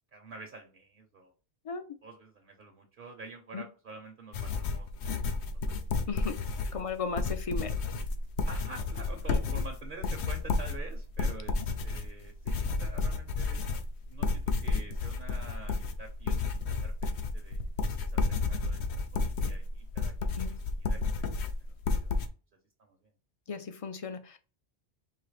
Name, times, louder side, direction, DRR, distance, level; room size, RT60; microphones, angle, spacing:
voice 1, 0.1-1.3 2.0-5.2 5.6-6.1 6.6-6.8 8.5-13.8 14.1-16.5 16.8-17.6 18.0-21.2 21.6-22.3 22.8-23.0, right 3 dB, 55° right, 4 dB, 0.9 m, -48 dB
sound 1, 4.3-22.3, left 3 dB, 90° left, 0.9 m, -31 dB
voice 2, 6.7-7.7 20.4-20.5 23.5-24.4, left 5 dB, 40° left, 9 dB, 0.5 m, -35 dB
4.8 x 2.8 x 3.2 m, 0.34 s
omnidirectional pair, 1.1 m